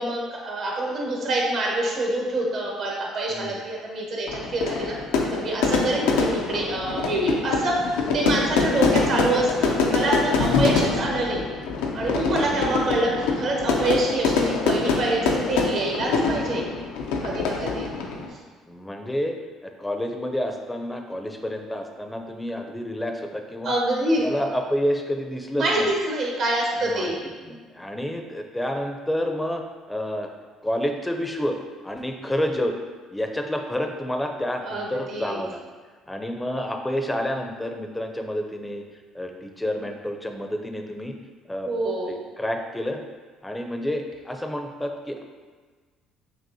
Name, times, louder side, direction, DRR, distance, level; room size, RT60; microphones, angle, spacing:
voice 1, 0.0-4.9 5.3-7.8 8.1-11.4 11.9-16.7 17.2-17.9 23.6-24.3 25.6-27.2 34.6-35.4 41.6-42.2, right 1 dB, 60° right, -2 dB, 1.0 m, -26 dB
voice 2, 3.3-3.6 10.5-10.9 15.7-15.9 17.0-17.8 18.7-23.7 24.1-25.9 26.8-29.6 29.9-30.3 30.6-31.6 31.8-32.8 33.1-35.6 36.1-38.8 39.1-41.1 41.5-43.0 43.4-45.2, equal, 10° left, 4 dB, 0.5 m, -29 dB
Fire / Fireworks, 4.3-18.3, left 4 dB, 85° left, 0.5 m, -25 dB
6.1 x 2.5 x 2.7 m, 1.5 s
supercardioid pair, 75°, 0 cm